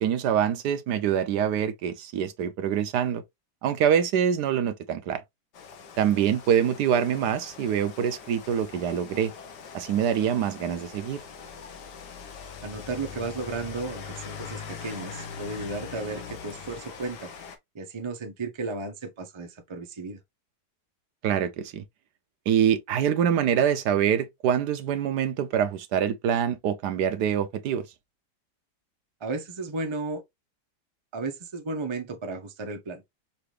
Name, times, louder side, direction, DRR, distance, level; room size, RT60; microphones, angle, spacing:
voice 1, 0.0-3.2 3.6-5.2 6.0-9.3 9.7-11.2 21.2-21.8 22.5-27.8, right 9 dB, 75° right, 1.2 m, -25 dB
Rain, 5.5-17.6, left 6 dB, 75° left, 1.5 m, -42 dB
voice 2, 12.6-17.3 17.7-20.2 29.2-30.2 31.1-33.0, right 3 dB, 35° right, 0.4 m, -34 dB
5.7 x 2.6 x 3.2 m
omnidirectional pair, 1.8 m